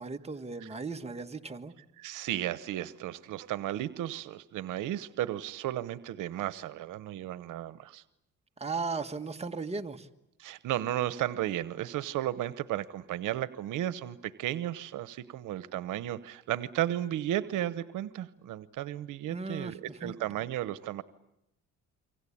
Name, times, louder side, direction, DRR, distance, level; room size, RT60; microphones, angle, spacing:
voice 1, 0.0-1.7 8.6-10.1 19.3-20.1, right 4 dB, 20° right, 5 dB, 1.6 m, -36 dB
voice 2, 2.0-8.0 10.4-21.0, right 13 dB, 85° right, 15 dB, 1.0 m, -34 dB
27.5 x 24.5 x 8.6 m, 0.84 s
cardioid pair, 90°, 30 cm